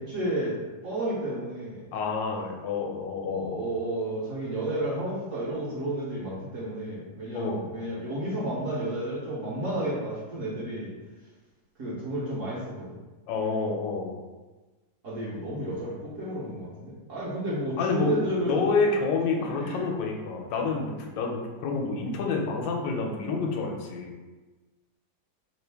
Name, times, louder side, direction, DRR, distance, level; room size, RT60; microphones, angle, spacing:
voice 1, 0.0-1.9 3.3-10.9 11.8-12.9 15.0-18.6 19.4-19.9, right 1 dB, 55° right, -7 dB, 1.0 m, -32 dB
voice 2, 1.9-3.7 7.3-7.7 13.3-14.1 17.8-24.1, left 4 dB, 80° left, 1 dB, 1.3 m, -28 dB
3.1 x 2.5 x 3.3 m, 1.2 s
omnidirectional pair, 2.0 m